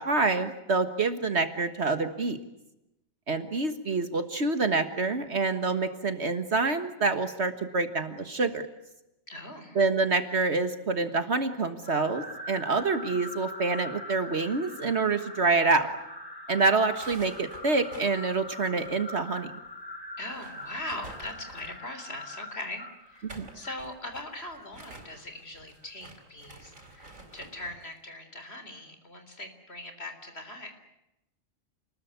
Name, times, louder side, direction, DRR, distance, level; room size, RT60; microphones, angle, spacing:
voice 1, 0.0-2.4 3.3-8.6 9.8-15.9 16.5-19.5 23.2-23.5, right 3 dB, 55° right, 9 dB, 1.8 m, -27 dB
voice 2, 9.3-9.8 20.2-30.7, left 1 dB, 50° left, 7 dB, 4.0 m, -41 dB
sound 1, 11.8-25.2, left 1 dB, 15° left, 3.2 m, -43 dB
sound 2, 16.8-19.4 19.6-19.7 20.1-21.9 23.0-27.8, right 2 dB, 90° right, 4.9 m, -49 dB
28.5 x 20.5 x 9.5 m, 0.90 s
omnidirectional pair, 1.3 m